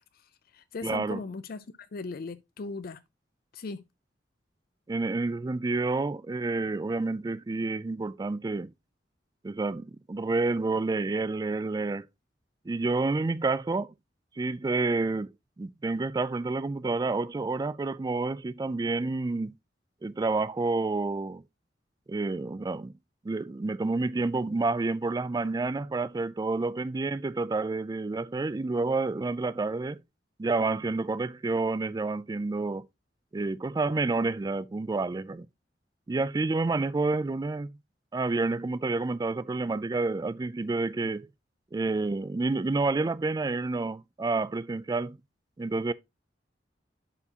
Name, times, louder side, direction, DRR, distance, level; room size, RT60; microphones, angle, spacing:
voice 1, 0.1-3.0 3.5-3.8, left 4 dB, 55° left, 0.5 m, -38 dB
voice 2, 0.8-1.2 4.9-8.7 9.4-12.1 12.7-13.9 14.4-15.3 15.6-19.5 20.0-21.4 22.1-22.9 23.2-30.0 30.4-32.9 33.3-35.5 36.1-37.8 38.1-41.3 41.7-45.2 45.6-45.9, right 3 dB, 20° right, 0.3 m, -29 dB
11.0 x 4.5 x 2.8 m
head